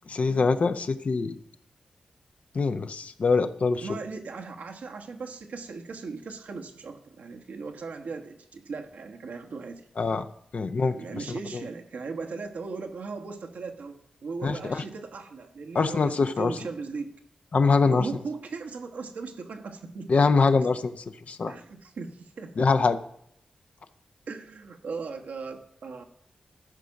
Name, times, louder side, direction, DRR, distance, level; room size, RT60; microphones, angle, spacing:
voice 1, 0.1-1.3 2.5-3.8 10.0-10.3 10.5-11.0 14.4-14.8 15.7-16.5 17.5-18.1 20.1-20.9 21.3-21.5 22.6-23.0, left 4 dB, 60° left, 10 dB, 0.7 m, -23 dB
voice 2, 3.8-9.8 10.8-17.1 17.9-20.1 21.5-22.7 24.3-26.0, right 4 dB, 75° right, 3 dB, 1.2 m, -38 dB
13.5 x 5.2 x 5.9 m, 0.72 s
supercardioid pair, 40°, 3 cm